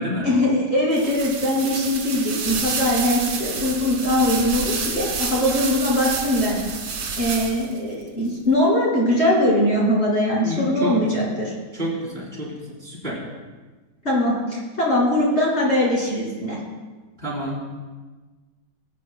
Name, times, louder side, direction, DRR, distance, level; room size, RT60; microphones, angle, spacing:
voice 1, 0.2-6.6 7.2-11.5 14.0-16.6, left 1 dB, 40° left, -5 dB, 2.8 m, -21 dB
sound 1, 0.9-7.8, right 5 dB, 70° right, 1.8 m, -29 dB
voice 2, 10.4-11.1 11.7-12.5 12.8-13.2 17.2-17.7, equal, 35° right, -7 dB, 3.5 m, -28 dB
20.0 x 9.1 x 2.2 m, 1.3 s
omnidirectional pair, 1.9 m